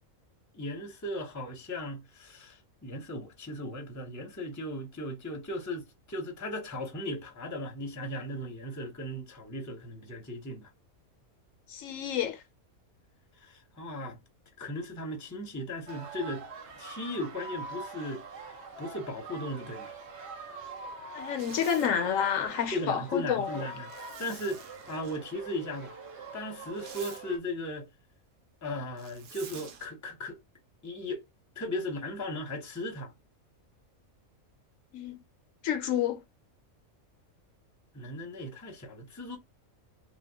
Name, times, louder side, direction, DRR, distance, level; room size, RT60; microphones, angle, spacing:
voice 1, 0.5-10.7 13.4-14.2 14.6-16.5 16.8-18.2 18.8-19.9 22.7-26.0 26.3-27.9 28.6-30.4 30.8-31.2 31.6-33.1 37.9-39.4, left 1 dB, 15° left, 0.7 m, -37 dB
voice 2, 11.7-12.4 21.1-23.6 34.9-35.2 35.6-36.2, left 8 dB, 75° left, 0.9 m, -29 dB
sound 1, 15.9-27.4, right 3 dB, 55° right, 1.0 m, -44 dB
Zipper (clothing), 21.2-21.9 23.9-25.2 26.5-27.2 29.0-29.9, right 7 dB, 90° right, 1.2 m, -49 dB
2.9 x 2.1 x 3.4 m
omnidirectional pair, 1.5 m